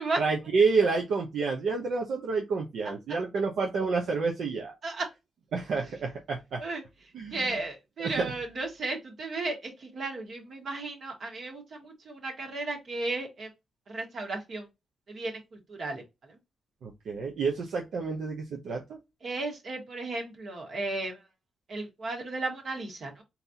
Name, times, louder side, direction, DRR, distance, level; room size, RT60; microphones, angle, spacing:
voice 1, 0.2-4.7 5.5-6.6 7.1-7.4 8.0-8.3 16.8-19.0, right 4 dB, 80° right, 0.8 m, -29 dB
voice 2, 7.3-13.5 13.9-14.7 15.1-16.0 19.2-21.2 21.7-23.2, right 2 dB, 60° right, 1.6 m, -34 dB
4.2 x 3.9 x 2.8 m
cardioid pair, 110°, 0 cm